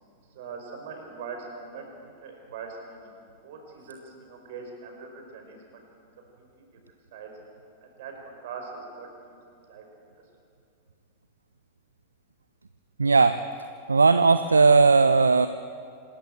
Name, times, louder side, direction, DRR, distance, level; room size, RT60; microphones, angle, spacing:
voice 1, 0.3-1.9 2.2-3.1 3.4-5.6 6.4-6.5 7.1-7.3 7.8-9.4 9.7-9.8, right 5 dB, 55° right, 2 dB, 5.1 m, -41 dB
voice 2, 13.0-13.4 13.9-15.5, right 4 dB, 75° right, 12 dB, 0.6 m, -18 dB
26.5 x 13.0 x 8.9 m, 2.4 s
figure-of-eight pair, 90°, 0 cm